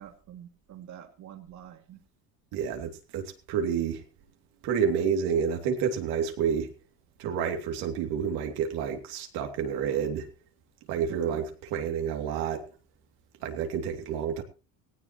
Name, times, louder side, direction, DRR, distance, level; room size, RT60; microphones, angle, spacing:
voice 1, 0.0-2.0 11.1-11.5, right 10 dB, 45° right, 4 dB, 2.6 m, -47 dB
voice 2, 2.5-4.0 4.6-6.7 7.2-10.3 10.9-12.7 13.4-14.4, right 7 dB, 75° right, 4 dB, 2.9 m, -29 dB
18.0 x 17.0 x 3.1 m, 0.33 s
cardioid pair, 145°, 39 cm